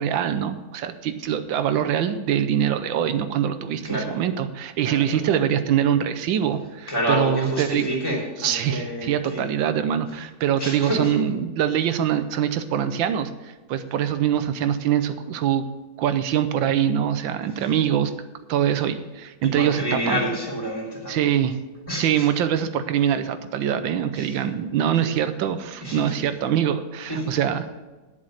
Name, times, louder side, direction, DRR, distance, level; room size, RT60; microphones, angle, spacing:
voice 1, 0.0-7.9 8.4-15.6 16.0-18.1 18.5-20.2 21.1-21.6 22.0-27.8, right 9 dB, 85° right, 10 dB, 1.4 m, -24 dB
voice 2, 3.8-4.2 4.8-5.3 6.9-9.4 10.6-11.2 19.4-21.3 21.9-22.3 24.1-24.4 25.8-26.1 27.1-27.2, equal, 10° left, -3 dB, 3.2 m, -28 dB
10.5 x 7.4 x 6.4 m, 1.2 s
omnidirectional pair, 2.1 m